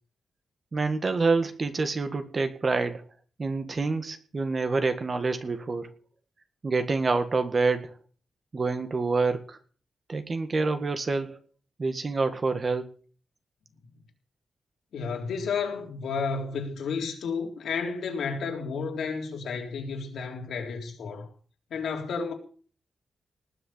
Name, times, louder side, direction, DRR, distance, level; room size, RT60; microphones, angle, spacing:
voice 1, 0.7-3.0 3.4-5.9 6.6-7.9 8.5-9.6 10.1-11.4 11.8-12.9, right 3 dB, 30° right, 1.8 m, -27 dB
voice 2, 14.9-21.3 21.7-22.3, left 5 dB, 90° left, 3.8 m, -32 dB
19.5 x 6.8 x 8.6 m
wide cardioid pair, 165°, 0 cm